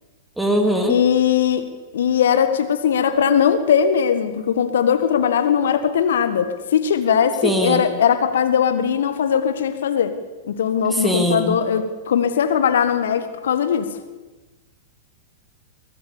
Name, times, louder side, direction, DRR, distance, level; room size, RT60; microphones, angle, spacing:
voice 1, 0.4-0.9 7.4-7.8 11.0-11.6, equal, 5° right, 3 dB, 2.8 m, -20 dB
voice 2, 0.9-1.7 1.9-10.2 10.5-13.9, left 8 dB, 60° left, 10 dB, 1.6 m, -19 dB
23.5 x 17.0 x 7.1 m, 1.2 s
figure-of-eight pair, 100°, 0 cm